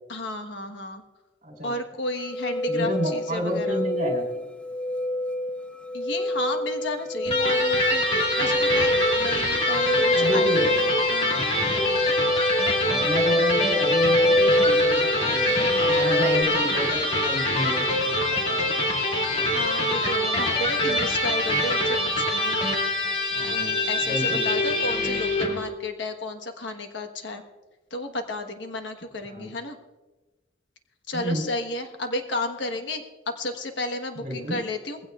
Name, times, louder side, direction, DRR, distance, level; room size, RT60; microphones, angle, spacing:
voice 1, 0.1-1.0 1.6-3.8 5.9-8.0 8.4-11.5 19.5-22.6 23.4-27.4 27.9-29.8 31.1-35.0, left 2 dB, 70° left, 6 dB, 1.3 m, -32 dB
sound 1, 2.2-16.4, left 1 dB, 5° left, 0.4 m, -25 dB
voice 2, 2.7-4.4 10.1-10.7 12.8-19.4 23.3-24.8 29.3-29.5 31.1-31.5 34.2-34.6, equal, 40° right, 0 dB, 4.1 m, -31 dB
Electric guitar, 7.3-25.6, left 1 dB, 30° left, 2.3 m, -25 dB
20.5 x 16.0 x 2.4 m, 1.2 s
head